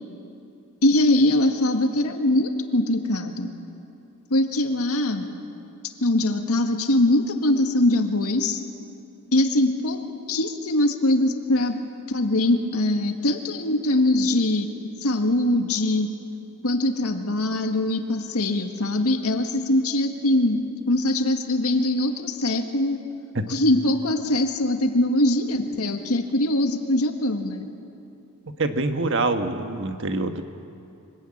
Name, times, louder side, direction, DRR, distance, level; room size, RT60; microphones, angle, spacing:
voice 1, 0.8-3.5 4.3-5.3 6.0-8.6 9.3-11.8 12.1-14.7 15.0-16.1 16.6-20.6 20.9-23.0 23.5-27.7, left 1 dB, 85° left, 5 dB, 1.8 m, -22 dB
voice 2, 28.6-30.4, right 2 dB, 60° right, 7 dB, 1.3 m, -25 dB
24.5 x 18.5 x 8.7 m, 2.7 s
head